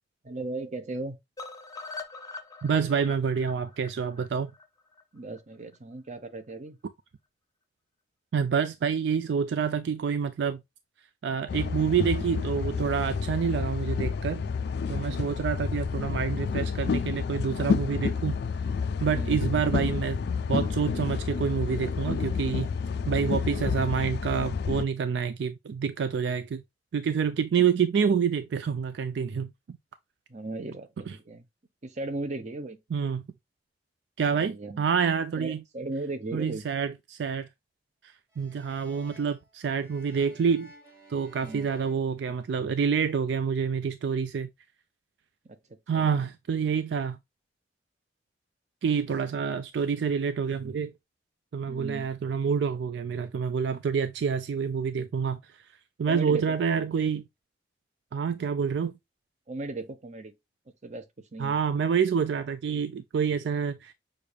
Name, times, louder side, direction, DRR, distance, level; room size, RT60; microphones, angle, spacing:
voice 1, 0.2-1.2 5.1-6.8 15.1-15.4 19.2-19.4 30.3-31.4 31.8-32.8 34.3-34.8 35.4-36.6 41.4-41.7 45.4-46.1 51.6-52.1 56.1-56.5 59.5-60.3 60.8-61.1 61.3-61.6, right 2 dB, 40° right, 0.8 m, -37 dB
sound 1, 1.4-5.4 5.7-5.8 6.1-6.2 6.5-6.6, left 3 dB, 20° left, 0.7 m, -43 dB
voice 2, 2.6-4.5 8.3-10.6 11.2-14.4 14.9-18.4 19.0-20.2 20.5-22.7 23.1-26.6 26.9-29.8 31.1-31.2 32.9-33.2 34.2-35.6 36.3-37.5 38.4-40.7 41.1-44.5 45.9-47.2 48.8-50.9 51.5-55.4 56.0-57.3 58.1-58.9 61.4-63.9, right 6 dB, 70° right, 0.3 m, -27 dB
sound 2, 11.5-24.8, left 5 dB, 60° left, 0.3 m, -29 dB
sound 3, 38.3-42.9, right 1 dB, 20° right, 1.6 m, -54 dB
6.6 x 2.5 x 3.3 m
head